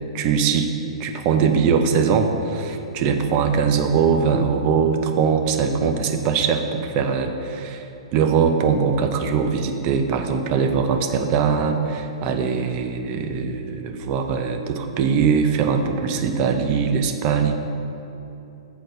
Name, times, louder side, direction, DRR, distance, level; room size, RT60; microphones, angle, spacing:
voice 1, 0.1-0.7 1.0-7.9 8.1-17.6, right 6 dB, 35° right, 5 dB, 0.7 m, -21 dB
7.7 x 4.2 x 6.7 m, 2.9 s
hypercardioid pair, 120°, 3 cm